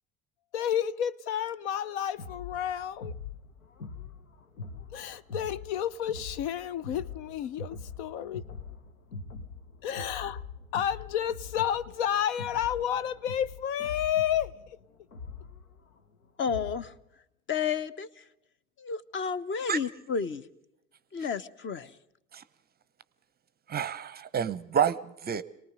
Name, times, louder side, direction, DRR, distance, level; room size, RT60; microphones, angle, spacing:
voice 1, 0.5-3.1 4.9-8.4 9.8-10.4 10.7-14.5, left 10 dB, 55° left, 0.7 m, -31 dB
sound 1, 2.2-17.0, left 4 dB, 75° left, 1.2 m, -43 dB
voice 2, 16.4-16.9 17.5-18.1 18.8-20.5 21.1-21.9, left 6 dB, 30° left, 1.0 m, -31 dB
voice 3, 23.7-25.4, right 8 dB, 25° right, 0.7 m, -29 dB
27.0 x 19.0 x 5.2 m
figure-of-eight pair, 70°, 41 cm